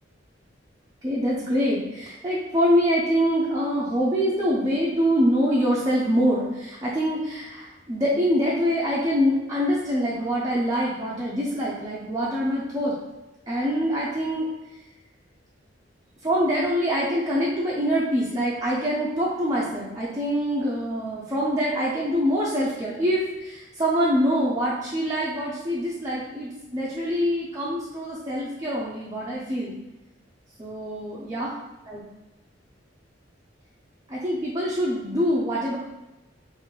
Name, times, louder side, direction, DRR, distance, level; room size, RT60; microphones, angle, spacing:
voice 1, 1.0-12.9 13.5-14.5 16.2-29.7 30.6-31.5 31.9-32.0 34.1-35.8, equal, 20° right, -6 dB, 0.5 m, -25 dB
3.7 x 2.6 x 3.1 m, 1.0 s
head